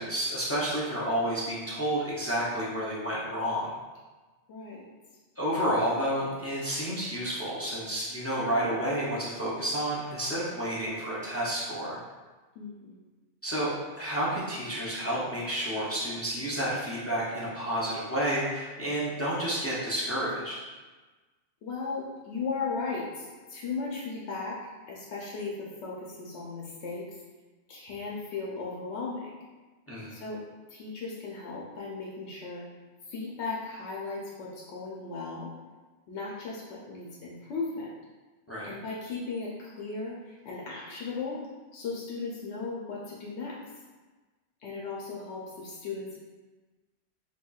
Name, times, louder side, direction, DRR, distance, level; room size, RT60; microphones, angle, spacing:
voice 1, 0.0-3.7 5.4-12.0 13.4-20.6 29.9-30.2 38.5-38.7, right 1 dB, 25° left, -7 dB, 0.3 m, -30 dB
voice 2, 4.5-4.9 12.6-13.0 21.6-24.6 24.9-27.1 27.7-29.3 30.1-30.4 30.7-32.6 33.1-35.5 36.1-36.6 36.9-37.9 38.6-41.4 41.7-43.6 44.6-46.2, left 4 dB, 75° left, -4 dB, 0.9 m, -36 dB
4.3 x 2.8 x 2.3 m, 1.3 s
omnidirectional pair, 1.2 m